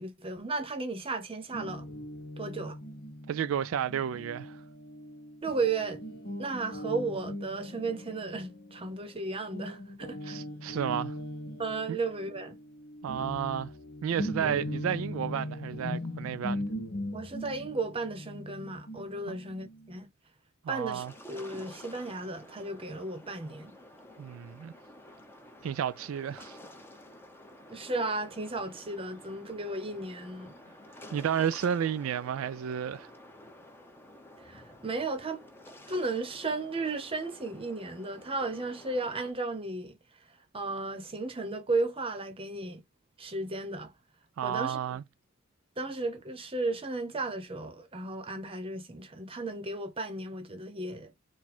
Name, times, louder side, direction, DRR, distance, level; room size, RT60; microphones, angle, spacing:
voice 1, 0.0-1.9 2.4-2.8 5.4-6.1 6.4-10.4 11.6-12.6 17.1-20.1 20.7-23.7 27.7-30.5 34.4-35.4 35.9-40.0 40.5-42.8 43.2-43.9 44.4-45.0 45.8-51.1, right 3 dB, 30° right, 0.9 m, -34 dB
Guitar, 1.5-9.2 9.5-20.0, left 1 dB, 50° left, 0.8 m, -40 dB
voice 2, 3.3-4.6 10.3-11.2 11.9-12.0 13.0-13.7 14.0-16.6 19.3-19.4 20.6-21.1 24.2-24.7 25.6-26.6 31.1-33.1 44.4-45.0, right 8 dB, 75° right, 0.3 m, -32 dB
sound 1, 20.8-39.3, left 1 dB, 10° left, 0.9 m, -51 dB
4.2 x 2.3 x 4.3 m
head